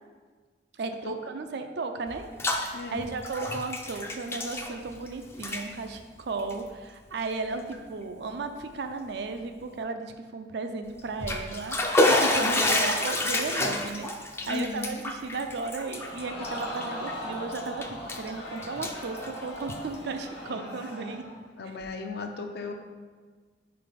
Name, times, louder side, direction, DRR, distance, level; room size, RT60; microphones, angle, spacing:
voice 1, 0.8-14.1 14.4-17.8 18.2-21.2 21.7-21.8, right 4 dB, 65° right, 7 dB, 0.5 m, -35 dB
Bathtub (filling or washing), 2.1-2.7 3.0-5.1 5.3-5.6 6.4-6.5 7.2-7.3 7.7-7.8 11.0-17.1 17.5-18.3 18.6-19.9, left 1 dB, 15° left, 0.4 m, -28 dB
voice 2, 2.7-3.1 12.4-12.8 14.5-14.9 20.5-20.7 21.6-22.7, left 4 dB, 65° left, 5 dB, 0.6 m, -36 dB
Crowd, 15.9-21.4 21.8-21.9, equal, 85° left, 1.2 m, -39 dB
4.8 x 3.9 x 5.0 m, 1.5 s
head